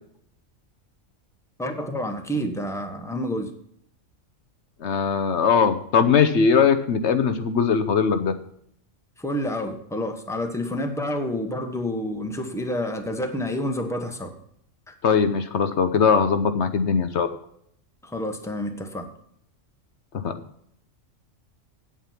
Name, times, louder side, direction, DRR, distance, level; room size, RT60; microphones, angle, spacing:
voice 1, 1.6-3.5 9.2-14.3 14.9-15.0 18.0-19.1, left 1 dB, ahead, 5 dB, 1.2 m, -29 dB
voice 2, 4.8-8.3 15.0-17.3 20.2-20.3, left 6 dB, 65° left, 9 dB, 1.0 m, -20 dB
8.9 x 8.4 x 5.8 m, 0.70 s
omnidirectional pair, 1.3 m